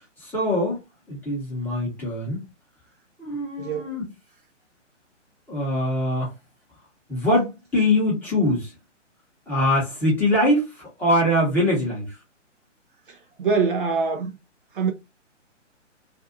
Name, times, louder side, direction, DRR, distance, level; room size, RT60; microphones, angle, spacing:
voice 1, 0.2-0.8 1.1-2.4 3.2-4.1 5.5-6.3 7.1-8.7 9.5-12.2, left 1 dB, 5° left, 0.9 m, -23 dB
voice 2, 3.6-3.9 13.1-14.4 14.7-14.9, right 5 dB, 45° right, 0.6 m, -24 dB
2.5 x 2.4 x 2.5 m
figure-of-eight pair, 135°, 38 cm